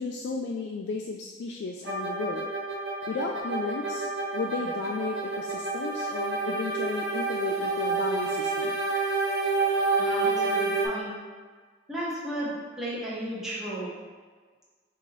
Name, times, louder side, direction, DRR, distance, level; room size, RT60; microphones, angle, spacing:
voice 1, 0.0-2.4 3.1-4.1 4.3-8.8, left 4 dB, 75° left, 1 dB, 0.3 m, -34 dB
sound 1, 1.8-10.9, right 3 dB, 65° right, 0.8 m, -28 dB
voice 2, 10.0-11.1 11.9-13.9, right 1 dB, 5° right, -9 dB, 1.1 m, -34 dB
4.6 x 2.8 x 3.9 m, 1.5 s
head